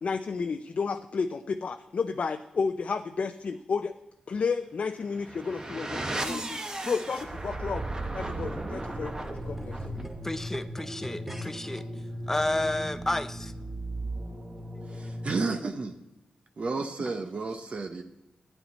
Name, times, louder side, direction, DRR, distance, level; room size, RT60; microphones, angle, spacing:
voice 1, 0.0-3.9 4.3-7.8 8.1-9.8, left 5 dB, 55° left, 0.5 m, -32 dB
sound 1, 5.0-15.7, right 1 dB, 25° right, 1.2 m, -36 dB
sound 2, 8.0-11.8 12.6-12.7, left 2 dB, 10° right, 1.2 m, -44 dB
voice 2, 9.9-11.8 12.3-13.5, left 1 dB, 15° left, 0.6 m, -31 dB
voice 3, 14.9-16.0 16.6-18.0, right 3 dB, 50° right, 0.8 m, -32 dB
12.0 x 9.4 x 4.1 m
wide cardioid pair, 90°, 3 cm